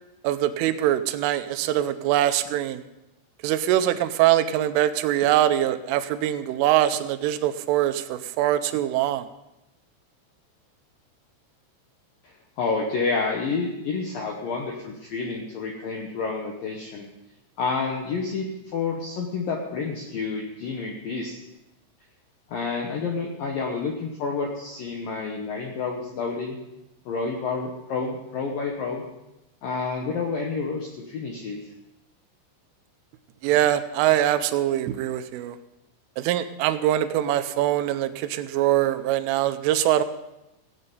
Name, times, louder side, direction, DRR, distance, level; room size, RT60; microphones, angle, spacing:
voice 1, 0.2-2.8 3.4-9.3 33.4-35.6 36.2-40.0, right 12 dB, 85° right, 10 dB, 3.2 m, -23 dB
voice 2, 12.2-17.1 17.6-21.4 22.5-26.6 27.1-29.0 29.6-31.6, left 4 dB, 75° left, 1 dB, 2.0 m, -29 dB
16.5 x 8.8 x 5.5 m, 0.94 s
omnidirectional pair, 5.7 m